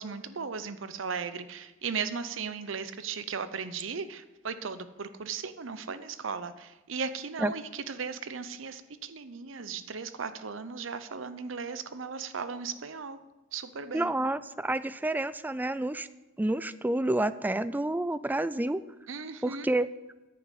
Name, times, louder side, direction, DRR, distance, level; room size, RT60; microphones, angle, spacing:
voice 1, 0.0-13.2 13.5-14.1 19.1-19.7, right 5 dB, 80° right, 12 dB, 0.7 m, -37 dB
voice 2, 13.9-16.1 16.4-18.8 19.4-19.9, right 1 dB, 10° right, 15 dB, 0.3 m, -29 dB
9.3 x 6.8 x 8.3 m, 1.1 s
head